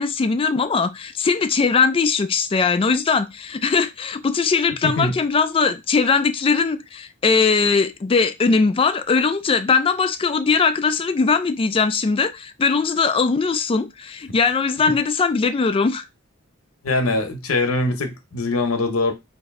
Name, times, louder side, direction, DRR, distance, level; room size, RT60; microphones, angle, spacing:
voice 1, 0.0-16.0, left 4 dB, 25° left, 0.3 m, -20 dB
voice 2, 4.8-5.1 16.8-19.1, left 2 dB, 85° left, 0.7 m, -22 dB
3.0 x 2.6 x 3.5 m
head